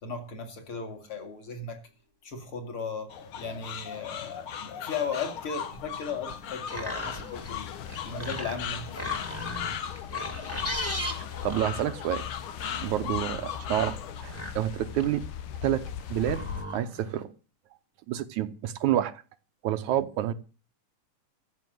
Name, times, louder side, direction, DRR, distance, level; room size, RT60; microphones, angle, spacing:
voice 1, 0.0-1.8 2.2-7.7 8.0-9.3 13.0-13.1, left 5 dB, 45° left, 3.0 m, -36 dB
sound 1, 3.1-14.2, left 9 dB, 60° left, 1.4 m, -38 dB
sound 2, 6.4-17.2, equal, 5° left, 1.3 m, -39 dB
sound 3, 7.3-16.7, left 10 dB, 80° left, 2.2 m, -40 dB
voice 2, 11.2-12.2 12.8-13.9 14.2-15.2 15.6-15.8 16.1-17.3 18.1-19.1 19.6-20.3, right 12 dB, 75° right, 2.1 m, -28 dB
14.5 x 6.9 x 7.8 m
omnidirectional pair, 3.7 m